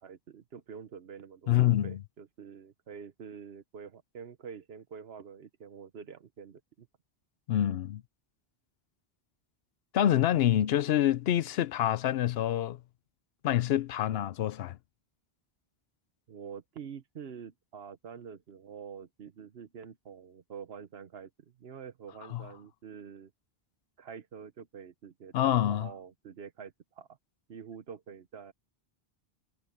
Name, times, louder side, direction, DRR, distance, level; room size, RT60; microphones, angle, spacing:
voice 1, 0.0-6.9 16.3-23.3 24.0-27.1 27.5-28.5, right 7 dB, 75° right, 1.2 m, -46 dB
voice 2, 1.5-2.0 7.5-8.0 9.9-12.8 13.4-14.8 22.3-22.4 25.3-25.9, left 11 dB, 75° left, 0.8 m, -26 dB
omnidirectional pair, 1.1 m